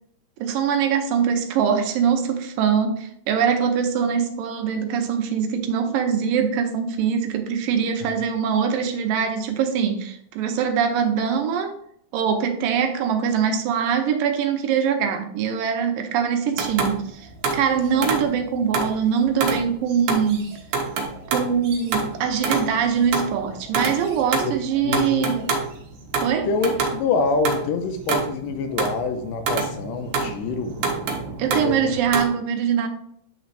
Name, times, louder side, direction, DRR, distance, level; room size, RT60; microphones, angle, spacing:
voice 1, 0.4-11.7 12.1-20.5 21.3-25.5 26.2-26.5 31.4-32.9, right 7 dB, 85° right, 5 dB, 2.5 m, -23 dB
sound 1, 16.6-19.0 19.4-32.3, right 4 dB, 70° right, 2.4 m, -27 dB
voice 2, 24.8-25.4 26.5-30.8 31.5-31.8, left 4 dB, 90° left, 6 dB, 2.4 m, -26 dB
8.6 x 4.0 x 3.3 m, 0.68 s
omnidirectional pair, 3.8 m